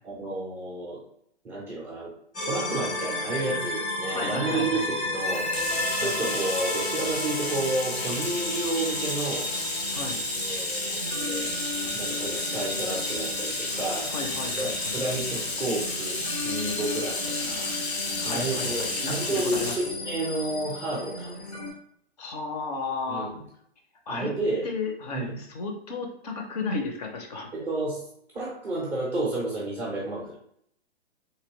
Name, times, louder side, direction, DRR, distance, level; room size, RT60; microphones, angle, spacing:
voice 1, 0.0-1.0 1.4-2.1 2.4-9.5 10.4-11.5 11.9-14.1 14.6-21.4 23.1-23.4 24.1-24.6 25.1-25.4 27.5-28.0 28.3-30.4, right 2 dB, 10° right, -6 dB, 0.4 m, -31 dB
sound 1, 2.3-21.7, left 1 dB, 90° left, 1.2 m, -33 dB
voice 2, 4.1-4.9 6.0-6.2 9.9-10.2 14.1-14.9 18.2-20.0 22.2-23.3 24.1-24.3 24.6-27.5, left 3 dB, 40° left, 3 dB, 0.6 m, -34 dB
Bathtub (filling or washing), 5.2-19.9, left 3 dB, 70° left, 0.9 m, -32 dB
3.0 x 2.9 x 2.8 m, 0.69 s
figure-of-eight pair, 120°, 33 cm